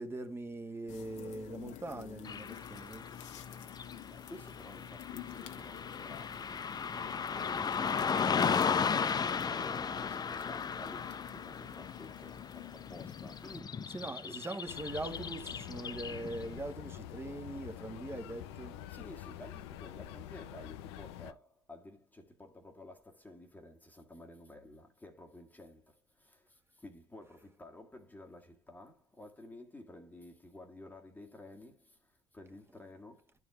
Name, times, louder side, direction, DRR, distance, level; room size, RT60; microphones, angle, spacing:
voice 1, 0.0-3.1 7.6-7.7 13.9-18.8, right 2 dB, 15° right, 1.9 m, -42 dB
sound 1, 0.9-13.6, left 11 dB, 60° left, 1.4 m, -50 dB
Car passing by / Traffic noise roadway noise, 2.2-16.5, left 6 dB, 30° left, 0.8 m, -36 dB
voice 2, 4.0-8.9 9.4-14.0 14.2-14.4 18.9-33.3, left 1 dB, 10° left, 1.8 m, -52 dB
sound 2, 14.7-21.3, left 12 dB, 75° left, 0.8 m, -46 dB
12.0 x 4.7 x 3.4 m
hypercardioid pair, 65°, 14 cm